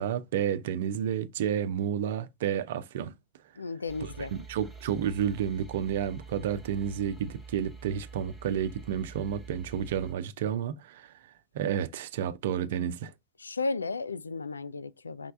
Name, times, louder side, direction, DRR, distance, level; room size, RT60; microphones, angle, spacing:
voice 1, 0.0-3.1 4.3-11.1 11.5-13.1, right 9 dB, 55° right, 0.5 m, -31 dB
voice 2, 3.6-4.3 13.4-15.3, left 3 dB, 75° left, 0.3 m, -34 dB
sound 1, 3.9-10.1, right 5 dB, 10° right, 1.1 m, -47 dB
5.2 x 3.2 x 2.4 m
figure-of-eight pair, 90°, 0 cm